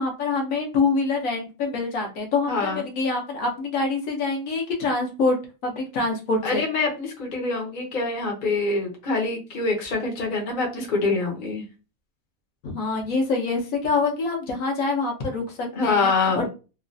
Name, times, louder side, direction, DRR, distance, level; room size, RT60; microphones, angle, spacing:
voice 1, 0.0-6.6 12.6-16.4, left 3 dB, 70° left, 1 dB, 1.2 m, -25 dB
voice 2, 2.5-2.8 6.4-11.6 15.7-16.5, left 3 dB, 40° left, 0 dB, 0.8 m, -25 dB
3.1 x 2.3 x 2.5 m, 0.31 s
omnidirectional pair, 1.5 m